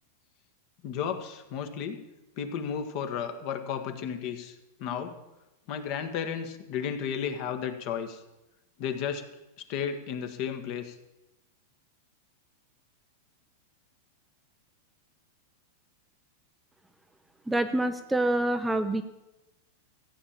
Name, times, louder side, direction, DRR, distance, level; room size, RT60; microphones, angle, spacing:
voice 1, 0.8-2.0 2.4-4.5 4.8-5.2 5.7-8.2 8.8-9.3 9.7-10.9, left 7 dB, 45° left, 8 dB, 1.6 m, -33 dB
voice 2, 17.5-19.0, right 1 dB, 5° right, 8 dB, 0.6 m, -26 dB
15.0 x 8.8 x 7.3 m, 0.98 s
supercardioid pair, 145°, 0 cm